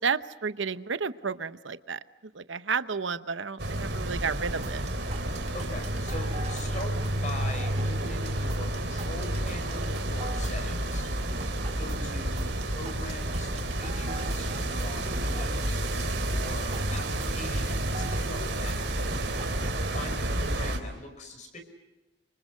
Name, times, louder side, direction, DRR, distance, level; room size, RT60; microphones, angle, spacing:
voice 1, 0.0-2.0 2.3-4.8, right 5 dB, 75° right, 13 dB, 0.8 m, -31 dB
sound 1, 3.6-20.8, right 1 dB, 60° right, 3.5 m, -30 dB
sound 2, 4.6-20.1, right 2 dB, 35° right, 2.2 m, -44 dB
voice 2, 5.5-11.1 11.7-15.8 16.3-19.1 19.8-21.6, left 1 dB, 40° left, 6 dB, 5.5 m, -42 dB
29.0 x 25.5 x 6.5 m, 1.1 s
head